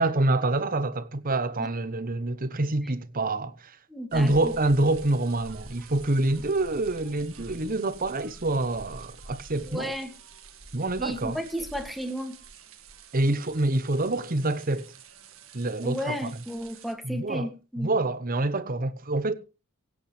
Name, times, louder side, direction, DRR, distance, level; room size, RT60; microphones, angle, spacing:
voice 1, 0.0-3.8 4.1-9.9 10.7-11.4 13.1-14.9 15.5-16.3 17.0-17.5 17.8-19.3, right 2 dB, 45° right, 1.0 m, -26 dB
voice 2, 3.9-4.5 9.7-10.1 11.0-12.4 15.8-17.9, equal, ahead, 2.2 m, -33 dB
sound 1, 4.1-16.9, right 3 dB, 75° right, 1.9 m, -47 dB
23.5 x 8.8 x 3.3 m
head